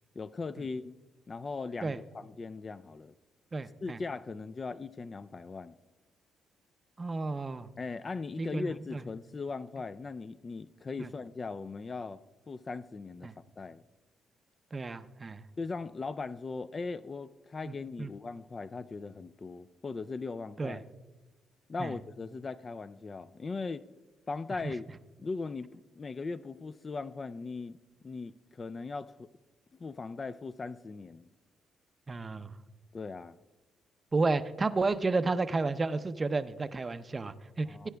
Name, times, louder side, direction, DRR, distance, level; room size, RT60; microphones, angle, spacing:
voice 1, 0.2-1.0 1.3-3.2 3.8-5.7 7.8-12.2 12.5-13.8 15.6-20.8 21.7-23.8 24.3-24.9 25.2-27.8 28.0-29.3 29.7-31.3 32.9-33.4 37.6-37.9, left 4 dB, 35° left, 0.3 m, -39 dB
voice 2, 3.5-4.0 7.0-7.7 8.4-9.0 11.0-11.1 13.2-13.3 14.7-15.4 17.7-18.1 20.6-20.8 21.8-21.9 32.1-32.5 34.1-37.9, right 3 dB, 30° right, 0.5 m, -32 dB
17.5 x 9.6 x 2.3 m
cardioid pair, 90°, 0 cm